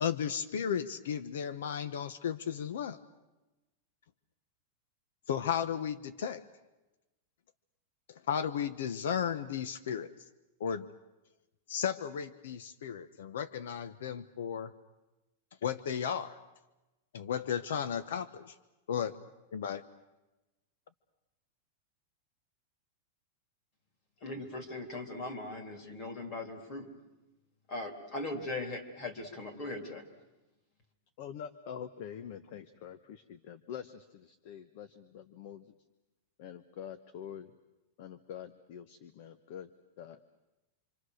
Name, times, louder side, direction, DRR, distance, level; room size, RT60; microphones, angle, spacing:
voice 1, 0.0-3.0 5.3-6.4 8.1-10.1 10.6-10.9 11.7-14.7 15.6-16.4 17.1-18.5 18.9-19.2 19.5-19.8, left 8 dB, 80° left, 13 dB, 1.0 m, -34 dB
voice 2, 24.2-26.9 27.7-30.1, left 2 dB, 30° left, 5 dB, 3.1 m, -39 dB
voice 3, 31.2-35.7 36.4-37.5 38.0-39.7 40.0-40.2, left 8 dB, 45° left, 12 dB, 0.9 m, -45 dB
27.0 x 26.0 x 6.5 m, 1.0 s
supercardioid pair, 170°, 0 cm